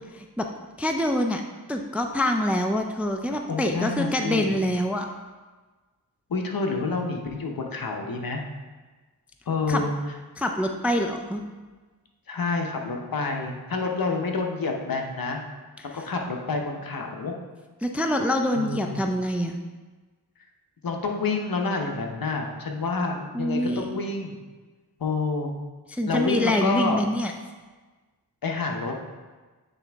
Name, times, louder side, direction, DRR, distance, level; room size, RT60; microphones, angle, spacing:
voice 1, 0.1-0.5 0.8-1.4 1.7-5.1 9.7-9.8 10.4-11.4 15.9-16.0 17.8-19.6 23.3-23.9 25.9-27.3, left 1 dB, 5° right, 4 dB, 0.4 m, -25 dB
voice 2, 3.5-4.6 6.3-8.4 9.5-9.9 12.3-15.4 15.9-17.3 18.5-19.1 20.8-24.4 25.0-25.5 26.1-27.0 28.4-28.9, left 3 dB, 60° left, 2 dB, 0.8 m, -28 dB
8.1 x 3.5 x 3.4 m, 1.3 s
wide cardioid pair, 75°, 38 cm